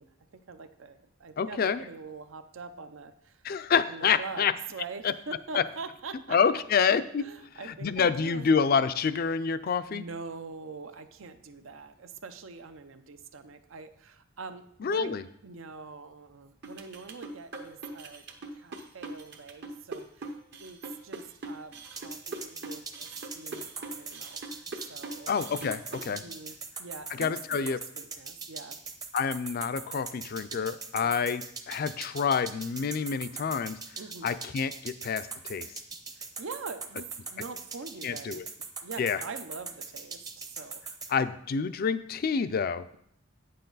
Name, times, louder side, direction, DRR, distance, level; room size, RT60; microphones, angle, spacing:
voice 1, 0.0-3.5 3.9-6.4 7.2-8.5 9.7-18.3 18.5-20.3 20.6-25.3 26.1-28.8 31.0-31.1 34.0-34.3 36.1-38.4 38.8-40.8, right 4 dB, 75° right, 10 dB, 0.6 m, -44 dB
voice 2, 1.4-1.8 3.4-4.5 5.5-5.6 6.3-7.3 7.8-10.0 14.8-15.2 25.3-26.2 27.2-27.8 29.1-33.8 34.2-35.7 38.0-38.4 39.0-39.2 41.1-42.8, left 6 dB, 50° left, 13 dB, 0.4 m, -27 dB
sound 1, 16.6-26.1, right 2 dB, 55° right, 0.9 m, -41 dB
sound 2, 22.0-41.1, right 4 dB, 20° right, 0.7 m, -40 dB
9.0 x 6.7 x 4.0 m, 0.71 s
head